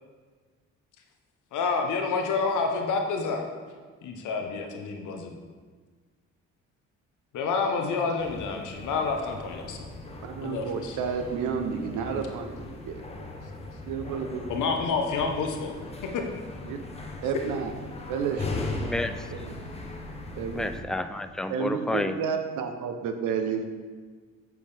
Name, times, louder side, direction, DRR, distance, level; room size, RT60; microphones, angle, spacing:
voice 1, 1.5-3.5 4.0-5.3 7.3-9.9 10.4-11.0 14.5-15.8 16.1-16.2, left 4 dB, 80° left, 3 dB, 1.1 m, -28 dB
sound 1, 8.2-20.8, left 2 dB, 20° left, 1.0 m, -39 dB
voice 2, 10.2-13.0 13.9-14.6 16.7-16.8 17.2-17.7 18.1-18.6 19.3-19.6 20.4-20.7 21.5-23.6, right 6 dB, 90° right, 6 dB, 0.8 m, -31 dB
voice 3, 18.8-19.1 20.5-22.2, left 1 dB, ahead, 9 dB, 0.3 m, -30 dB
7.3 x 6.3 x 3.5 m, 1.5 s
cardioid pair, 90°, 30 cm